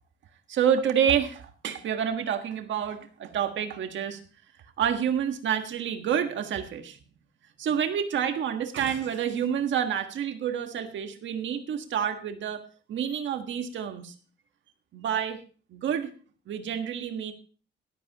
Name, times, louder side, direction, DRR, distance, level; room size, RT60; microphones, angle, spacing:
voice 1, 0.5-4.2 4.8-7.0 7.6-12.6 12.9-14.1 14.9-15.4 15.7-16.1 16.5-17.3, right 8 dB, 75° right, 6 dB, 1.5 m, -28 dB
13.5 x 12.5 x 3.0 m, 0.39 s
cardioid pair, 90°, 20 cm